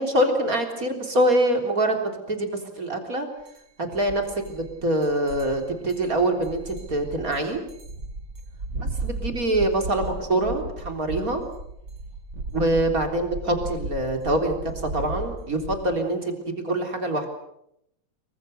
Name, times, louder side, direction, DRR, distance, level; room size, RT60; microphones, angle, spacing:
voice 1, 0.0-2.5 2.8-3.3 3.8-7.6 8.8-11.4 12.5-17.3, right 1 dB, 50° right, 4 dB, 4.2 m, -25 dB
sound 1, 3.5-3.6 3.9-15.8, right 2 dB, 70° right, 5.2 m, -35 dB
27.0 x 24.5 x 6.7 m, 0.77 s
omnidirectional pair, 2.0 m